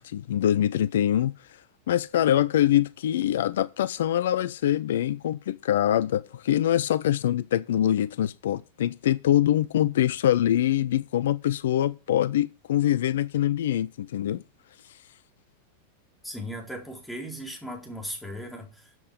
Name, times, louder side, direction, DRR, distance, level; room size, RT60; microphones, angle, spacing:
voice 1, 0.0-1.6 1.9-14.4 14.8-15.0, left 11 dB, 60° left, 0.5 m, -24 dB
voice 2, 16.2-19.0, equal, 5° left, 4.2 m, -37 dB
13.5 x 7.6 x 5.1 m
figure-of-eight pair, 90°, 0 cm